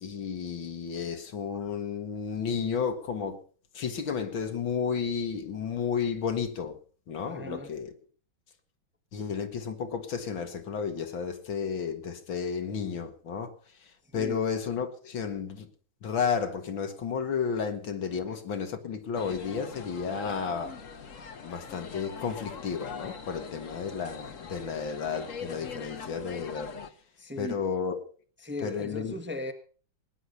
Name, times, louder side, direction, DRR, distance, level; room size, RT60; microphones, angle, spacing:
voice 1, 0.0-3.4 3.7-6.8 7.1-7.9 9.1-13.5 13.8-15.7 16.0-20.8 21.4-26.8 27.4-28.0 28.6-29.1, left 6 dB, 75° left, 2.5 m, -32 dB
voice 2, 7.2-7.7 14.1-14.4 27.2-27.6 28.4-29.5, left 1 dB, 5° right, 1.3 m, -37 dB
sound 1, 19.1-26.9, left 5 dB, 45° left, 1.5 m, -42 dB
20.0 x 10.0 x 5.7 m
omnidirectional pair, 2.2 m